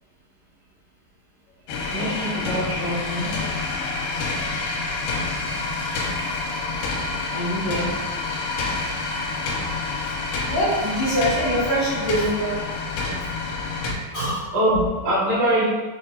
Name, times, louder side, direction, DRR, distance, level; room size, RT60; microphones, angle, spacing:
sound 1, 1.7-13.9, left 3 dB, 80° left, 2.4 m, -28 dB
voice 1, 1.9-3.3 4.9-5.4 7.3-7.9 13.8-15.6, equal, 70° right, -13 dB, 3.1 m, -25 dB
voice 2, 10.4-12.6 14.1-14.5, equal, 65° left, -12 dB, 1.1 m, -23 dB
6.2 x 2.5 x 2.8 m, 1.3 s
omnidirectional pair, 4.1 m